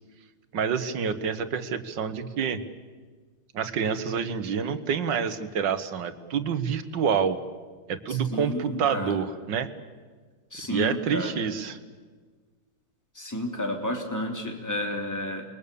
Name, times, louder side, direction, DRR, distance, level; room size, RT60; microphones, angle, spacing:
voice 1, 0.5-2.6 3.5-7.4 7.9-9.7 10.7-11.8, right 7 dB, 70° right, 10 dB, 1.9 m, -27 dB
voice 2, 8.1-9.1 10.5-11.4 13.1-15.4, left 1 dB, 10° left, 2 dB, 3.1 m, -31 dB
28.5 x 22.0 x 7.0 m, 1.5 s
omnidirectional pair, 2.1 m